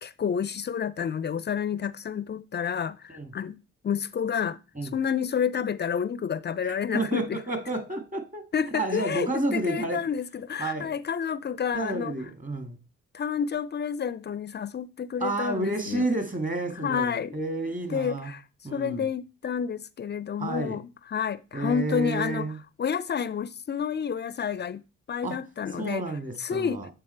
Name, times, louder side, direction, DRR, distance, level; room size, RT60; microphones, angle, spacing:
voice 1, 0.0-7.4 8.5-12.1 13.1-16.1 16.8-17.3 17.9-18.4 18.7-20.8 21.1-22.5 22.8-24.8 25.1-26.0 26.4-26.8, left 7 dB, 35° left, 0.4 m, -29 dB
voice 2, 6.7-8.4 8.7-10.0 10.6-11.0 11.7-12.8 15.2-18.3 18.6-19.1 20.4-20.8 21.5-22.6 25.2-25.4 25.8-26.9, right 2 dB, 25° right, 2.1 m, -30 dB
8.4 x 3.8 x 4.4 m
hypercardioid pair, 45°, 32 cm